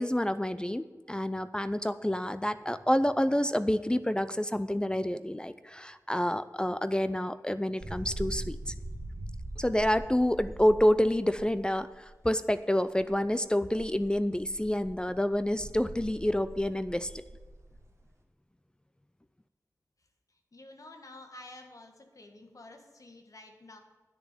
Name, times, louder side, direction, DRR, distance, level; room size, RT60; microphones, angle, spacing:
voice 1, 0.0-8.7 9.6-17.2, left 1 dB, 15° left, 12 dB, 0.5 m, -28 dB
sound 1, 7.8-12.1 13.0-13.1 13.7-18.1, right 1 dB, 50° right, 1.9 m, -42 dB
voice 2, 20.5-23.8, left 2 dB, 65° left, 4 dB, 1.8 m, -50 dB
10.5 x 6.7 x 8.7 m, 1.3 s
wide cardioid pair, 60°, 6 cm